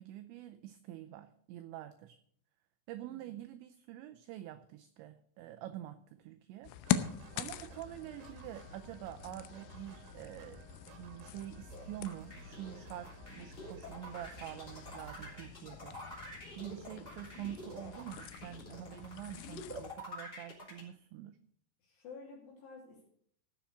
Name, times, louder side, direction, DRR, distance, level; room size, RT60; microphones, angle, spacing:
voice 1, 0.0-2.2 2.9-6.7 7.4-10.6 11.0-21.4, right 13 dB, 85° right, 9 dB, 2.6 m, -46 dB
voice 2, 3.0-3.4 21.8-23.1, left 4 dB, 60° left, -2 dB, 4.4 m, -52 dB
sound 1, 6.6-20.0, left 11 dB, 85° left, 3.3 m, -43 dB
sound 2, 6.8-15.5, right 6 dB, 65° right, 2.9 m, -56 dB
sound 3, 11.7-20.8, left 1 dB, 15° left, 2.9 m, -48 dB
14.5 x 7.2 x 6.4 m, 0.63 s
omnidirectional pair, 5.9 m